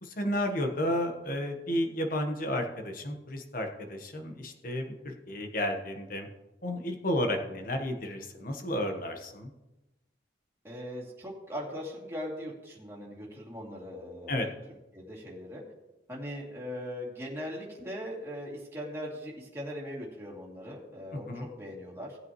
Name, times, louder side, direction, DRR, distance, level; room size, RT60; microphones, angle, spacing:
voice 1, 0.0-6.3 6.6-9.5 14.3-14.5 21.1-21.5, left 1 dB, 45° left, 5 dB, 1.3 m, -32 dB
voice 2, 10.6-14.5 14.9-15.6 16.1-22.2, equal, 15° right, -4 dB, 2.7 m, -40 dB
18.0 x 8.3 x 3.1 m, 1.0 s
head